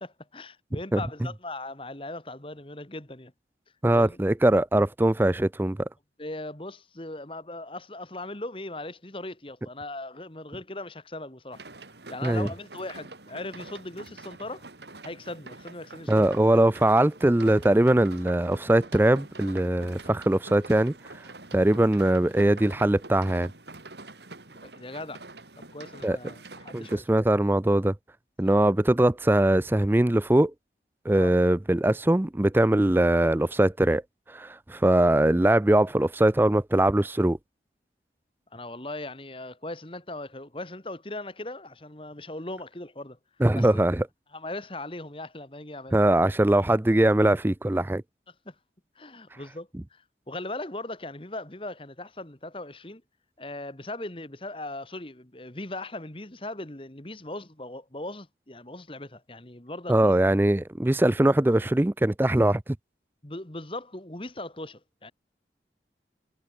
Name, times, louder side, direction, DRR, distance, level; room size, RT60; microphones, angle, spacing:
voice 1, 0.0-3.3 3.9-4.2 6.2-11.6 12.1-14.7 15.0-16.5 24.6-25.2 25.6-27.1 31.1-31.3 38.5-43.2 43.5-43.8 44.3-46.0 48.3-48.6 49.0-53.0 53.4-60.1 63.2-65.1, left 2 dB, 30° left, 1.9 m, -39 dB
voice 2, 3.8-5.9 12.2-12.5 16.1-20.9 21.5-23.5 26.0-26.2 26.7-27.9 28.4-30.5 31.1-34.0 34.3-37.4 43.4-44.0 45.9-48.0 59.9-62.6, right 1 dB, 10° right, 0.4 m, -21 dB
sound 1, 11.5-27.0, right 3 dB, 75° right, 4.2 m, -46 dB
head